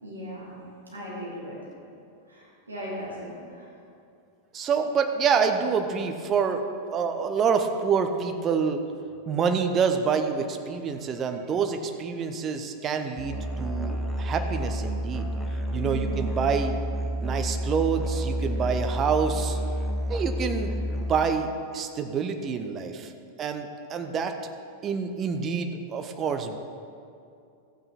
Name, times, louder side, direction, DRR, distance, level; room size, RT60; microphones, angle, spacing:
voice 1, 0.0-0.6 0.9-1.6 2.3-3.3 15.8-16.4, right 1 dB, 80° right, -6 dB, 3.1 m, -37 dB
voice 2, 4.5-6.6 6.9-8.8 9.3-15.3 15.7-16.8 17.2-19.6 20.1-21.5 21.7-23.1 23.4-24.4 24.8-26.6, right 6 dB, 30° right, 7 dB, 0.8 m, -27 dB
Musical instrument, 13.2-21.1, equal, ahead, 1.2 m, -29 dB
14.0 x 8.7 x 4.2 m, 2.5 s
figure-of-eight pair, 90°, 0 cm